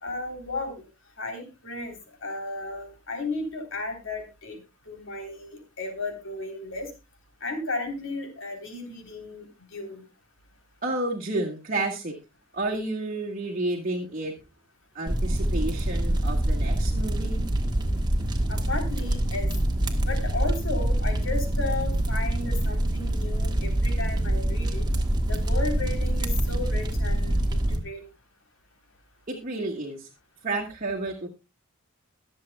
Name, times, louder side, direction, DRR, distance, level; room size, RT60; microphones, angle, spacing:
voice 1, 0.0-0.8 1.2-1.9 2.2-4.6 4.8-6.9 7.4-10.0 18.5-19.5 20.0-24.8 25.3-28.0, left 2 dB, 60° left, 3 dB, 3.4 m, -34 dB
voice 2, 10.8-12.1 12.5-14.3 14.9-17.4 29.3-30.1 30.4-31.3, right 2 dB, 40° right, 0 dB, 1.6 m, -30 dB
sound 1, 15.1-27.8, right 1 dB, 20° right, 1.4 m, -25 dB
22.5 x 7.6 x 2.2 m, 0.26 s
head